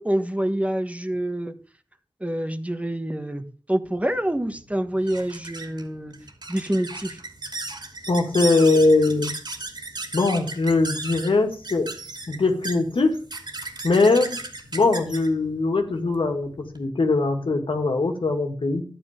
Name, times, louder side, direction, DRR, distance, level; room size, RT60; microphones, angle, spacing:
voice 1, 0.0-1.5 2.2-6.1 6.5-7.2, right 1 dB, 15° right, 8 dB, 1.3 m, -26 dB
sound 1, 3.9-16.8, right 2 dB, 55° right, 2.7 m, -36 dB
voice 2, 8.1-9.3 10.1-11.9 12.3-13.2 13.8-14.4 14.7-18.8, left 3 dB, 75° left, 5 dB, 2.1 m, -21 dB
12.0 x 9.0 x 5.1 m, 0.41 s
wide cardioid pair, 65°, 9 cm